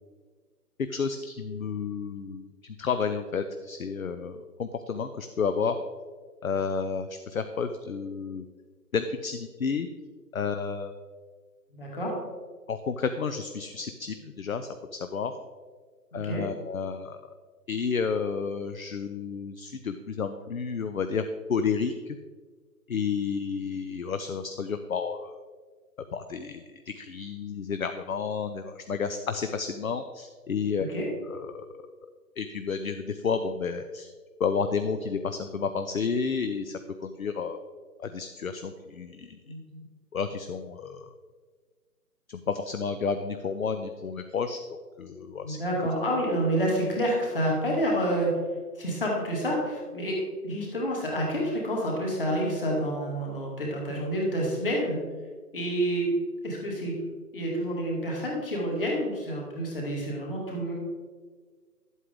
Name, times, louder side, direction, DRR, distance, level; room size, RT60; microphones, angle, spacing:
voice 1, 0.9-5.8 6.4-8.4 8.9-9.9 10.3-10.9 12.7-15.3 16.1-17.2 17.7-21.2 21.5-22.2 22.9-25.3 26.1-30.9 31.3-31.7 32.4-34.1 34.4-37.6 38.0-39.4 40.1-41.1 42.3-45.6, left 5 dB, 60° left, 8 dB, 0.6 m, -31 dB
voice 2, 11.7-12.1 16.1-16.4 30.9-31.1 39.5-39.7 45.4-48.3 48.8-55.0 55.5-56.1 56.4-56.9 57.3-60.7, equal, 35° left, -2 dB, 2.4 m, -28 dB
11.0 x 8.2 x 3.7 m, 1.5 s
hypercardioid pair, 180°, 48 cm